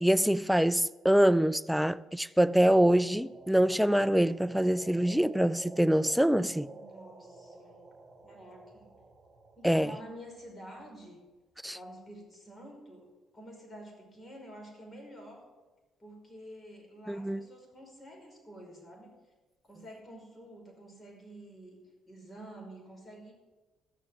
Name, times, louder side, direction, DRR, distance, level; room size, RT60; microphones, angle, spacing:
voice 1, 0.0-6.7 9.6-9.9 11.6-11.8 17.1-17.5, right 1 dB, ahead, 0.4 m, -25 dB
sound 1, 2.5-10.5, right 3 dB, 15° right, 2.7 m, -51 dB
voice 2, 6.7-7.8 8.2-8.9 9.6-11.2 11.7-13.1 13.3-15.4 16.0-19.1 19.6-21.8 22.1-23.3, equal, 25° left, 5.3 m, -49 dB
16.0 x 6.9 x 7.7 m
supercardioid pair, 70°, 0 cm